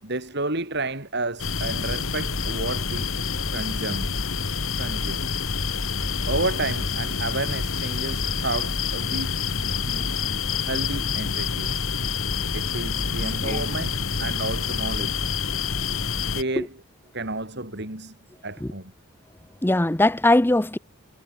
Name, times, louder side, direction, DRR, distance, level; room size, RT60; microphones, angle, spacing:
voice 1, 0.0-3.1 3.5-4.2 4.8-5.3 6.3-9.4 9.6-10.1 10.6-11.9 12.5-15.3 16.3-16.8 17.1-18.2 18.4-18.9, right 2 dB, 55° right, 6.1 m, -31 dB
sound 1, 1.4-16.4, left 5 dB, 85° left, 2.3 m, -27 dB
voice 2, 19.6-20.8, left 1 dB, 10° left, 0.6 m, -20 dB
head